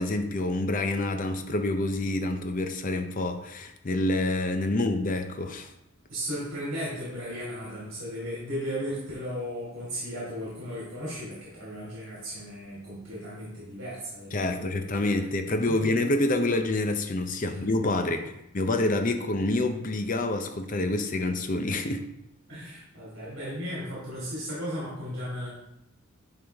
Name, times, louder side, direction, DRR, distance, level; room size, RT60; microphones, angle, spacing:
voice 1, 0.0-5.7 14.3-22.1, left 2 dB, 40° left, 7 dB, 0.6 m, -27 dB
voice 2, 6.1-14.7 15.7-15.9 17.5-17.6 18.1-18.3 22.5-25.5, equal, 60° right, -7 dB, 2.6 m, -36 dB
10.0 x 3.7 x 3.5 m, 0.83 s
head